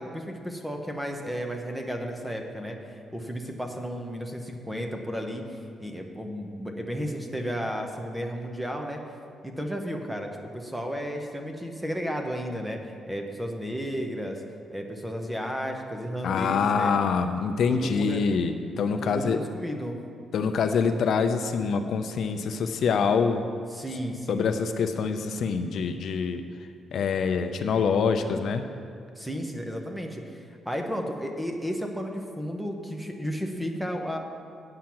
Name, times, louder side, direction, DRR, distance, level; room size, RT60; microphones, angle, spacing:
voice 1, 0.0-2.8 3.1-5.4 5.8-9.0 9.4-14.4 14.7-16.9 17.7-18.2 19.0-20.0 23.7-24.5 29.2-34.2, equal, 5° right, 3 dB, 0.8 m, -33 dB
voice 2, 16.2-19.4 20.3-23.4 24.3-26.4 26.9-28.6, left 5 dB, 60° left, 7 dB, 0.5 m, -25 dB
8.6 x 5.8 x 7.7 m, 2.3 s
cardioid pair, 150°, 0 cm